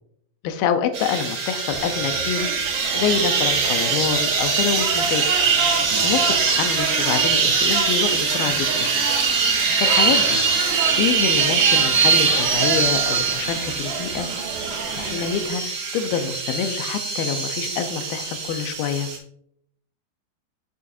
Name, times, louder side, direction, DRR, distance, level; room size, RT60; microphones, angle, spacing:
voice 1, 0.4-2.5 2.9-5.2 6.0-8.9 9.8-10.4 11.0-14.3 15.0-15.6 15.9-19.1, left 7 dB, 85° left, 8 dB, 2.2 m, -26 dB
sound 1, 0.9-19.2, right 5 dB, 60° right, 1.6 m, -22 dB
sound 2, 1.7-15.5, right 5 dB, 85° right, 1.7 m, -31 dB
7.9 x 6.7 x 2.5 m, 0.70 s
omnidirectional pair, 4.8 m